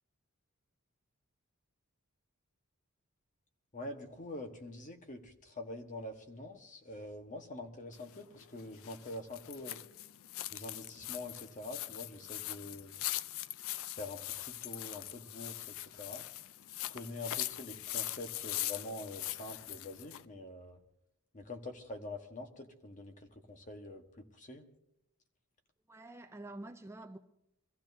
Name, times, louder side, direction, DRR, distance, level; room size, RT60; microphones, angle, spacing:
voice 1, 3.7-9.8 10.5-12.9 13.9-16.2 16.8-20.8 21.3-24.7, left 2 dB, 35° left, 1.3 m, -45 dB
sound 1, 7.9-20.3, left 14 dB, 65° left, 0.4 m, -41 dB
voice 2, 25.9-27.2, right 2 dB, 10° right, 0.5 m, -47 dB
23.0 x 14.5 x 2.7 m
head